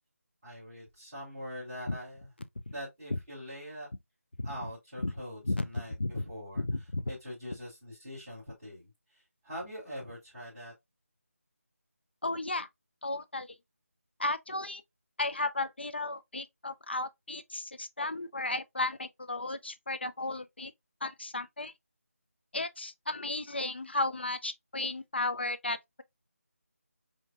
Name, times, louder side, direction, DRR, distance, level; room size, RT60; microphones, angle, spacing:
voice 1, 0.4-2.3 2.7-3.9 4.4-6.6 7.1-10.7, equal, 10° right, 2.1 m, -43 dB
voice 2, 6.7-7.1 12.2-12.7 13.0-13.5 14.2-14.8 15.2-20.7 21.0-21.7 22.5-26.0, left 2 dB, 45° left, 0.4 m, -34 dB
5.0 x 2.8 x 2.3 m
figure-of-eight pair, 180°, 8 cm